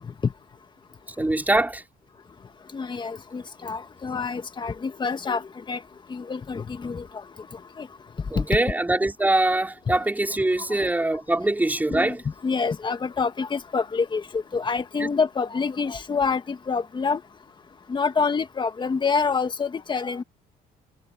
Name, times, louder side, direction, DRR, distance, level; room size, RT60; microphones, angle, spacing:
voice 1, 1.2-1.8 8.3-12.2 15.0-15.1, right 2 dB, 10° right, 5.0 m, -23 dB
voice 2, 2.7-5.8 6.1-7.1 7.8-7.9 8.4-8.5 9.9-10.0 10.7-10.8 11.9-12.2 12.4-17.2 17.9-20.2, left 5 dB, 25° left, 1.7 m, -27 dB
cardioid pair, 110°, 17 cm